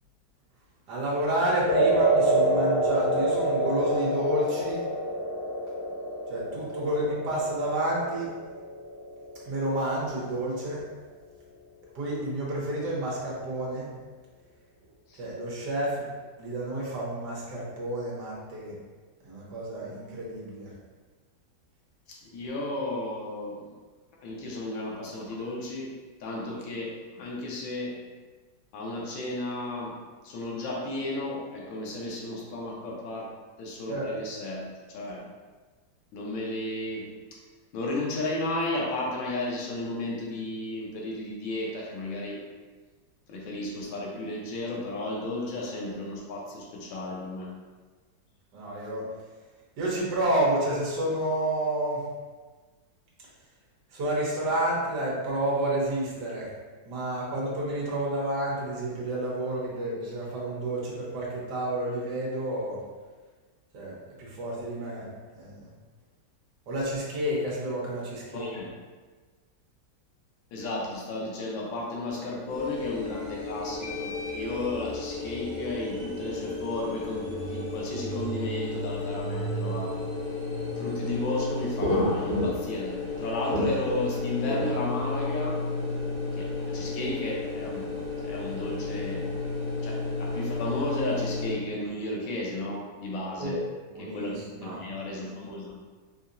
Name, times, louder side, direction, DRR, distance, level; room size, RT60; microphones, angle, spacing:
voice 1, 0.9-4.8 6.3-8.3 9.4-10.8 11.9-13.9 15.2-16.1 16.4-18.8 19.2-20.7 33.9-34.1 48.5-49.0 49.8-52.0 53.9-56.5 56.9-62.8 63.7-65.1 65.3-65.7 66.7-68.5 93.4-93.6 93.9-94.8, right 1 dB, 65° right, -5 dB, 1.4 m, -30 dB
sound 1, 1.7-10.0, right 2 dB, 65° left, 1.0 m, -27 dB
voice 2, 22.1-23.6 24.2-25.9 26.2-28.0 28.7-30.0 30.2-33.3 33.6-35.2 36.1-37.1 37.7-42.4 43.3-47.5 68.3-68.7 70.5-80.0 80.8-85.6 86.3-87.9 88.2-89.3 89.8-93.6 94.0-95.8, left 2 dB, 90° left, -2 dB, 1.5 m, -33 dB
sound 2, 72.5-91.5, left 2 dB, 35° left, 1.5 m, -32 dB
4.2 x 2.7 x 2.5 m, 1.4 s
omnidirectional pair, 2.1 m